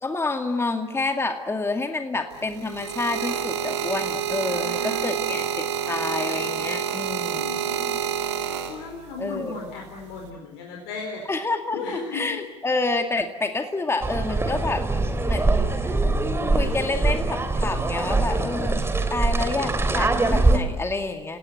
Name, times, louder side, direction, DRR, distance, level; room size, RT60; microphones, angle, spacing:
voice 1, 0.0-7.5 9.2-9.6 11.3-14.8 15.3-15.7 16.5-21.4, left 3 dB, 15° left, 5 dB, 2.2 m, -28 dB
sound 1, 2.3-9.2 10.0-10.3, right 8 dB, 80° right, 3.1 m, -28 dB
voice 2, 4.4-5.3 7.2-8.3 8.7-11.3 11.7-12.2, left 3 dB, 70° left, 2 dB, 4.3 m, -36 dB
sound 2, 14.0-20.6, right 2 dB, 15° right, 3.3 m, -23 dB
30.0 x 17.5 x 9.5 m, 1.1 s
hypercardioid pair, 65°, 15 cm